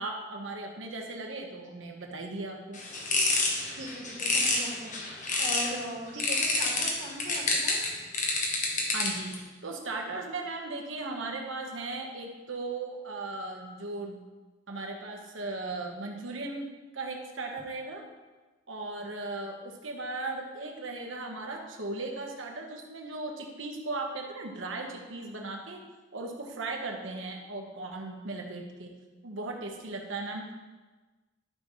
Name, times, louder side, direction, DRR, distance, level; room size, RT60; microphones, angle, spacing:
voice 1, 0.0-2.8 8.9-9.4 9.6-14.2 14.7-16.7 16.9-18.0 18.7-25.8 26.1-28.9 29.2-30.5, right 2 dB, 90° right, 1 dB, 1.2 m, -37 dB
sound 1, 2.7-5.8 6.2-9.3, left 3 dB, 40° left, 1.1 m, -28 dB
voice 2, 3.7-5.0 5.4-7.9, equal, 65° right, -6 dB, 2.4 m, -39 dB
12.0 x 5.6 x 3.1 m, 1.3 s
head